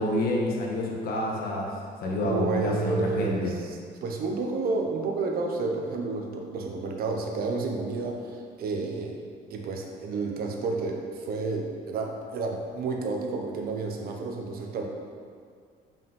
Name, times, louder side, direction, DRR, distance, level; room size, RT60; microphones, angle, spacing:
voice 1, 0.0-1.7 2.0-3.5, left 1 dB, 60° left, -1 dB, 1.4 m, -28 dB
voice 2, 2.2-9.1 9.5-14.9, right 3 dB, 60° right, 2 dB, 1.0 m, -30 dB
5.5 x 5.4 x 5.5 m, 2.1 s
cardioid pair, 110°, 17 cm